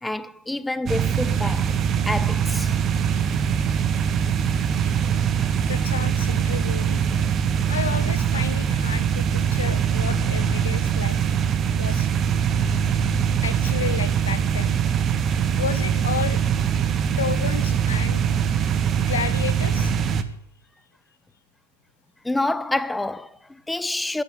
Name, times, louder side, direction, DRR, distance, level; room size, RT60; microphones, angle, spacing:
voice 1, 0.0-1.8 2.1-2.7 18.6-18.7 22.2-24.2, left 2 dB, 5° left, 0.5 m, -28 dB
sound 1, 0.9-20.2, right 8 dB, 25° right, 1.4 m, -22 dB
voice 2, 5.6-7.0 7.7-11.3 11.8-12.1 13.4-14.7 15.6-16.4 17.2-18.2 18.9-19.9 20.2-20.3, left 7 dB, 65° left, 1.4 m, -32 dB
12.0 x 11.5 x 9.6 m
figure-of-eight pair, 90°, 0 cm